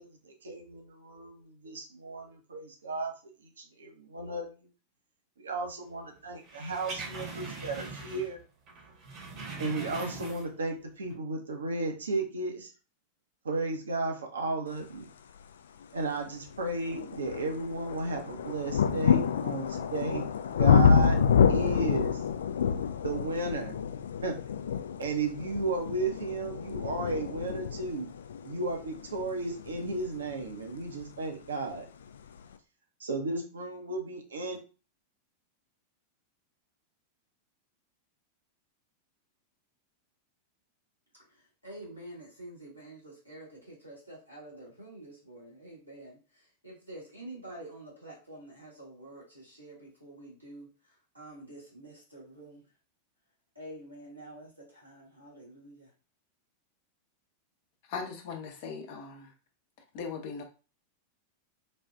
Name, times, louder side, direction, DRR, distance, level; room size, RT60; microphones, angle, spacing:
voice 1, 0.0-3.1 3.4-4.5 5.4-8.4 9.6-12.7 13.4-15.0 15.9-21.2 21.5-22.2 23.0-23.7 24.2-24.3 25.0-28.1 28.4-31.8 33.0-34.6, right 3 dB, 70° right, 0.7 m, -34 dB
sound 1, 6.5-8.4 8.7-10.7 11.0-11.1, right 3 dB, 35° right, 0.9 m, -41 dB
sound 2, 15.8-15.9 16.5-31.2 32.1-32.2, left 7 dB, 65° left, 0.3 m, -28 dB
voice 2, 41.3-50.7 51.1-52.6 53.5-55.9, right 1 dB, 90° right, 1.4 m, -48 dB
voice 3, 57.8-59.3 59.9-60.4, left 5 dB, 50° left, 0.7 m, -39 dB
4.2 x 2.3 x 2.2 m
figure-of-eight pair, 90°, 0 cm